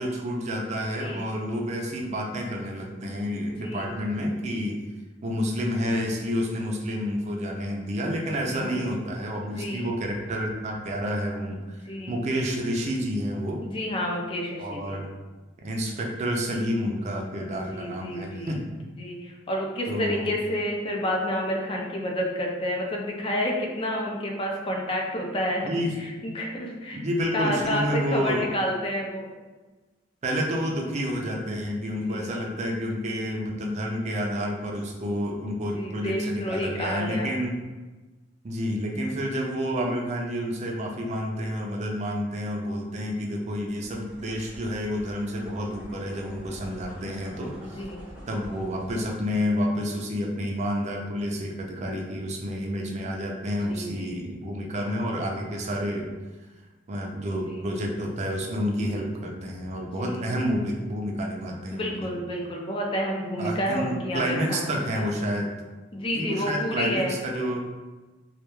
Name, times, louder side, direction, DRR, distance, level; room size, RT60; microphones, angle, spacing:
voice 1, 0.0-4.8 5.2-11.8 12.1-13.6 14.6-15.1 15.6-18.6 19.9-20.3 25.6-26.0 26.9-28.5 30.2-37.6 38.4-47.8 48.3-56.1 56.9-62.0 63.4-65.5 66.1-67.7, equal, 35° right, 0 dB, 0.4 m, -29 dB
voice 2, 3.6-3.9 8.5-8.9 9.4-9.9 11.8-12.2 13.6-15.0 17.5-18.5 19.0-25.7 26.0-27.0 27.3-29.3 31.8-32.3 35.7-37.3 47.6-48.0 53.5-54.2 57.3-57.6 59.7-60.2 61.7-64.7 64.9-65.1 65.9-67.2, equal, 30° left, 0 dB, 0.4 m, -30 dB
sound 1, 43.8-49.0, equal, 5° right, 0.7 m, -46 dB
2.2 x 2.2 x 3.0 m, 1.2 s
head